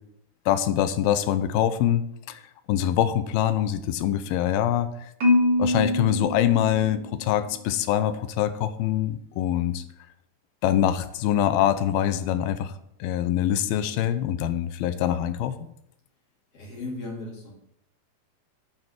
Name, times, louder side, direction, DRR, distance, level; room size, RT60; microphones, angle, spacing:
voice 1, 0.5-2.4 2.7-4.9 5.6-9.8 10.6-12.7 13.0-15.6, left 11 dB, 85° left, 12 dB, 2.6 m, -24 dB
Marimba xylophone, 5.2-7.4, left 2 dB, 35° right, 2.5 m, -24 dB
voice 2, 16.5-17.5, left 2 dB, 40° left, -2 dB, 3.5 m, -36 dB
8.9 x 5.4 x 7.4 m, 0.77 s
omnidirectional pair, 4.4 m